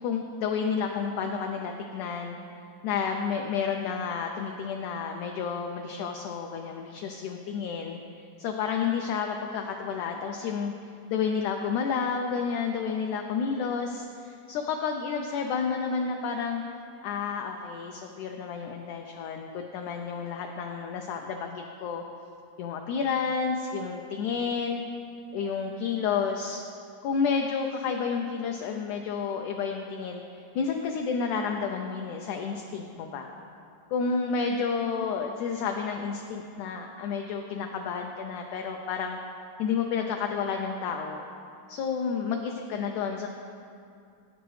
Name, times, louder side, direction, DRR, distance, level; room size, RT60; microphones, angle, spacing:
voice 1, 0.0-2.4 2.8-8.0 8.4-10.7 11.1-16.6 17.0-22.0 22.6-24.8 25.3-26.6 27.0-33.3 33.9-39.2 39.6-41.2 41.7-43.3, left 6 dB, 80° left, 3 dB, 1.8 m, -30 dB
13.0 x 9.1 x 3.2 m, 2.5 s
omnidirectional pair, 3.8 m